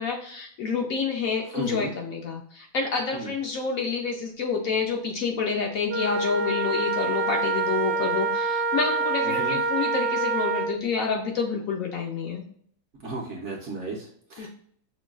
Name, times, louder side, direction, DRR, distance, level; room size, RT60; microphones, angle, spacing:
voice 1, 0.0-12.4 14.4-14.5, left 5 dB, 70° left, 1 dB, 0.9 m, -28 dB
voice 2, 1.5-1.9 3.1-3.3 9.2-9.6 13.0-14.5, right 2 dB, 55° right, -2 dB, 0.9 m, -34 dB
Wind instrument woodwind instrument, 5.9-10.8, right 3 dB, 85° right, 0.4 m, -26 dB
6.1 x 2.2 x 2.3 m, 0.62 s
omnidirectional pair, 1.8 m